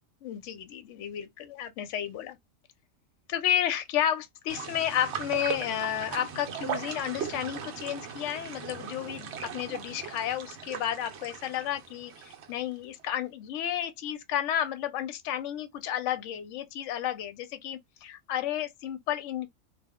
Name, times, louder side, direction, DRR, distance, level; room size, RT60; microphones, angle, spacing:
voice 1, 0.2-2.4 3.3-19.5, left 11 dB, 70° left, 0.9 m, -32 dB
sound 1, 4.5-12.7 13.0-13.1, right 7 dB, 65° right, 0.8 m, -38 dB
2.3 x 2.0 x 3.5 m
omnidirectional pair, 1.4 m